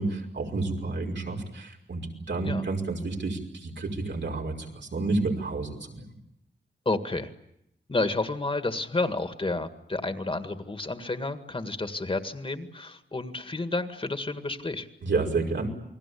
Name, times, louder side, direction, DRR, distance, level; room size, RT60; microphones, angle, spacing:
voice 1, 0.0-6.0 15.0-15.7, right 3 dB, 85° right, 0 dB, 5.5 m, -30 dB
voice 2, 6.9-7.3 7.9-14.9, left 2 dB, 30° left, 9 dB, 1.9 m, -30 dB
29.0 x 21.0 x 8.5 m, 0.78 s
wide cardioid pair, 110°, 18 cm